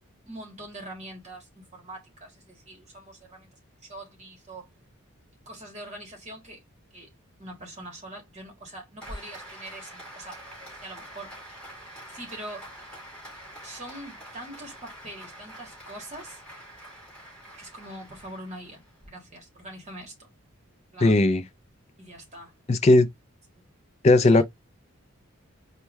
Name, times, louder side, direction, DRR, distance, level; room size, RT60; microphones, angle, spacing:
voice 1, 0.2-3.5 3.8-4.7 5.4-6.6 6.9-7.1 7.4-10.4 10.8-11.3 12.1-12.7 13.6-16.4 17.6-20.3 20.9-21.2 22.0-22.5 23.5-23.7 24.3-24.4, right 1 dB, 30° right, 1.5 m, -43 dB
Applause, 9.0-19.1, equal, 5° left, 2.4 m, -45 dB
voice 2, 21.0-21.4 22.7-23.1 24.0-24.4, left 2 dB, 30° left, 0.4 m, -17 dB
4.5 x 2.2 x 3.1 m
head